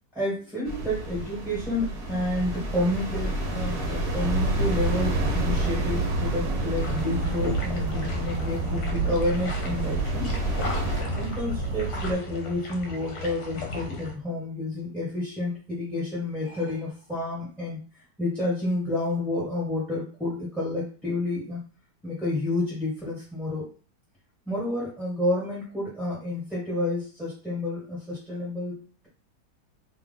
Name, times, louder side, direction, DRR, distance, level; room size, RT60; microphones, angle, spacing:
voice 1, 0.1-10.3 11.1-17.8 18.2-21.6 22.0-23.7 24.5-29.1, left 1 dB, ahead, -8 dB, 1.8 m, -30 dB
sound 1, 0.6-11.0, right 1 dB, 35° right, 1.3 m, -31 dB
sound 2, 4.2-12.1, right 3 dB, 75° right, 1.2 m, -29 dB
sound 3, 6.8-14.1, left 3 dB, 60° left, 1.3 m, -37 dB
3.3 x 3.1 x 3.9 m, 0.37 s
omnidirectional pair, 1.9 m